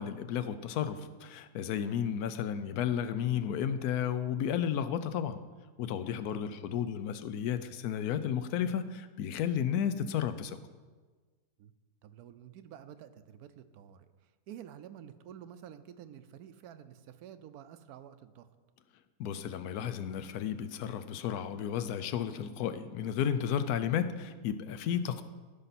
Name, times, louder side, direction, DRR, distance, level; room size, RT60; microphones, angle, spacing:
voice 1, 0.0-5.4 5.8-10.6 19.2-25.2, left 9 dB, 80° left, 11 dB, 1.1 m, -33 dB
voice 2, 12.0-14.1 14.5-18.5 24.9-25.0, right 10 dB, 80° right, 12 dB, 1.1 m, -50 dB
14.5 x 5.7 x 4.1 m, 1.4 s
omnidirectional pair, 1.6 m